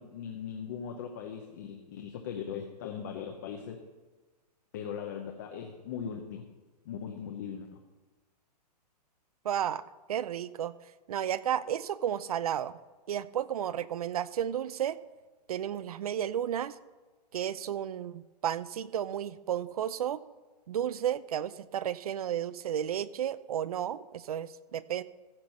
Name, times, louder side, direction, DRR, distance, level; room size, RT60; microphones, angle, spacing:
voice 1, 0.0-3.8 4.7-6.4 6.8-7.7, left 7 dB, 30° left, 3 dB, 0.7 m, -39 dB
voice 2, 9.4-9.8 10.1-10.7 11.1-12.7 13.1-15.0 15.5-16.8 17.3-20.2 20.7-25.0, right 10 dB, 60° right, 18 dB, 0.5 m, -32 dB
15.0 x 6.1 x 5.5 m, 1.2 s
hypercardioid pair, 175°, 21 cm